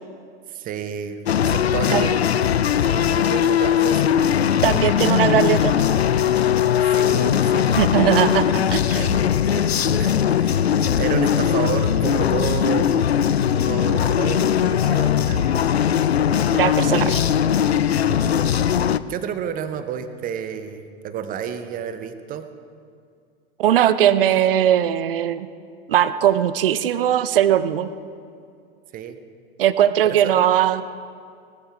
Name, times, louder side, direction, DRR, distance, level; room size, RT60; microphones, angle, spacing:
voice 1, 0.5-2.3 2.7-4.1 6.8-8.5 8.9-13.1 13.5-15.5 18.1-22.5 28.9-29.2 30.0-30.3, right 8 dB, 25° right, 10 dB, 0.9 m, -31 dB
sound 1, 1.3-19.0, left 9 dB, 80° left, 0.5 m, -19 dB
voice 2, 4.6-5.7 7.8-9.1 16.6-17.2 23.6-25.5 25.9-27.9 29.6-30.8, right 11 dB, 60° right, 14 dB, 0.7 m, -19 dB
19.0 x 12.5 x 3.5 m, 2.3 s
figure-of-eight pair, 90°, 31 cm